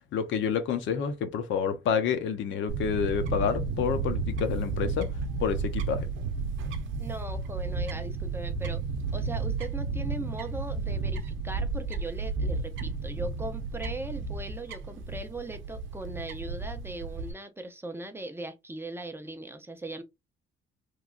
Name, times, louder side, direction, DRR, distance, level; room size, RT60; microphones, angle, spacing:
voice 1, 0.1-5.1 5.4-6.1, left 7 dB, 80° left, 0.7 m, -28 dB
Fowl / Bird, 2.7-17.3, right 4 dB, 90° right, 0.6 m, -32 dB
voice 2, 7.0-8.8 9.1-20.0, right 2 dB, 10° right, 0.5 m, -39 dB
3.1 x 2.5 x 2.2 m
cardioid pair, 125°, 20 cm